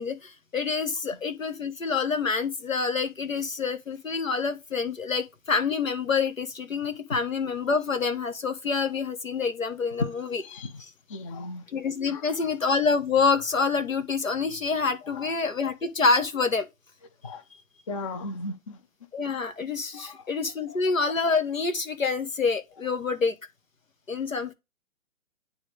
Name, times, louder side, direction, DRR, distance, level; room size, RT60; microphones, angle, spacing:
voice 1, 0.0-10.4 11.7-16.7 17.5-17.6 19.1-23.4 24.1-24.5, left 4 dB, 80° left, 1.4 m, -27 dB
voice 2, 11.1-11.6 12.1-12.5 15.0-15.3 17.2-17.4 17.9-18.8 19.9-20.2 20.7-20.8, left 3 dB, 25° left, 0.5 m, -35 dB
10.0 x 3.4 x 3.4 m
figure-of-eight pair, 130°, 39 cm